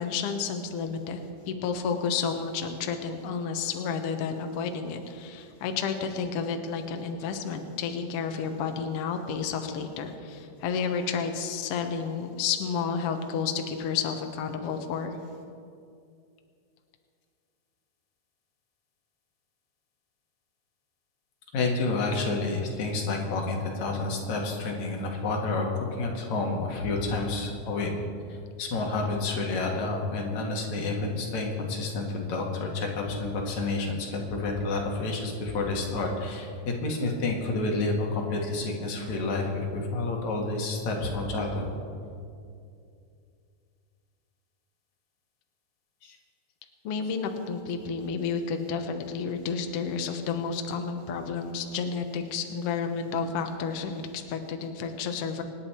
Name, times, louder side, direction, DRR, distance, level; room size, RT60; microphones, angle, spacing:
voice 1, 0.0-15.1 46.8-55.4, left 6 dB, 85° left, 5 dB, 1.3 m, -31 dB
voice 2, 21.5-27.9 28.3-41.7 46.0-46.2, left 3 dB, 55° left, 0 dB, 2.9 m, -29 dB
25.5 x 9.8 x 4.4 m, 2.4 s
omnidirectional pair, 4.1 m